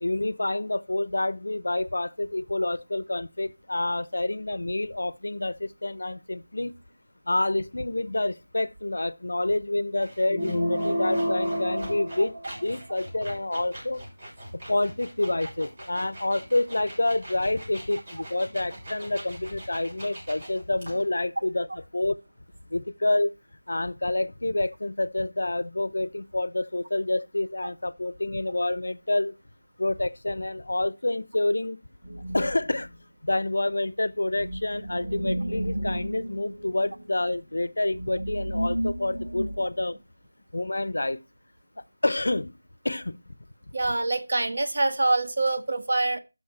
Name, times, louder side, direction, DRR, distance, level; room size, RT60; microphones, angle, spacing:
voice 1, 0.0-6.7 7.3-14.0 14.5-21.7 21.9-22.2 22.7-23.3 23.7-29.4 29.8-31.8 32.3-32.9 33.2-40.0 40.5-41.2 42.0-42.6 42.8-43.3, left 2 dB, 70° left, 0.8 m, -28 dB
sound 1, 10.0-21.1, right 1 dB, 30° right, 7.0 m, -43 dB
sound 2, 10.3-12.9, equal, 10° right, 1.6 m, -29 dB
sound 3, 32.0-33.0 34.1-40.0, right 1 dB, 80° right, 4.8 m, -33 dB
voice 2, 43.7-46.2, right 2 dB, 50° right, 1.4 m, -25 dB
12.0 x 6.4 x 4.3 m
figure-of-eight pair, 175°, 0 cm